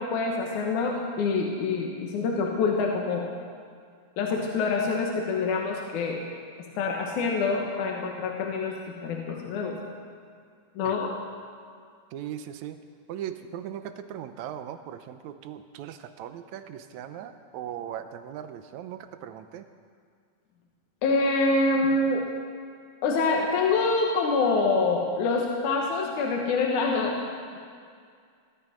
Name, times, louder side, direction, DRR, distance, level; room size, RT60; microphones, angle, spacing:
voice 1, 0.0-3.2 4.2-6.2 6.8-8.8 9.0-9.8 10.8-11.1 21.0-22.3 23.0-27.2 27.5-27.6, left 3 dB, 75° left, 0 dB, 2.7 m, -26 dB
voice 2, 12.1-12.8 13.1-19.7, right 10 dB, 80° right, 10 dB, 2.0 m, -39 dB
21.0 x 12.5 x 5.1 m, 2.2 s
omnidirectional pair, 3.5 m